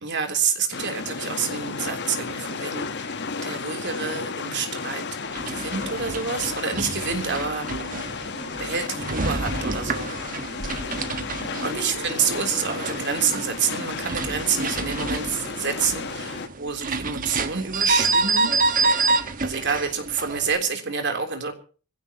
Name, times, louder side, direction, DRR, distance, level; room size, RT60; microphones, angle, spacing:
voice 1, 0.0-5.0 5.5-7.7 8.2-8.3 8.6-10.1 11.6-18.6 19.4-21.5, right 6 dB, 55° right, 5 dB, 3.3 m, -28 dB
sound 1, 0.7-16.5, left 4 dB, 55° left, 1.2 m, -33 dB
sound 2, 5.2-20.6, right 3 dB, 40° right, 1.4 m, -28 dB
25.0 x 16.5 x 2.9 m, 0.38 s
head